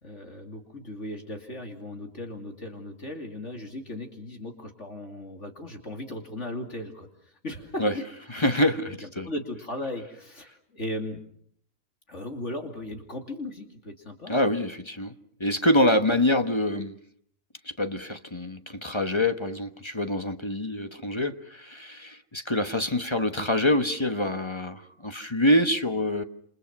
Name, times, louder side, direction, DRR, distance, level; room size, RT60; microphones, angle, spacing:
voice 1, 0.0-8.0 9.0-11.2 12.1-14.3 15.7-15.9, left 1 dB, 45° left, 3.1 m, -37 dB
voice 2, 8.3-9.3 14.3-15.1 15.4-17.0 17.6-26.2, left 1 dB, 20° left, 1.1 m, -25 dB
28.5 x 27.5 x 6.1 m
omnidirectional pair, 1.7 m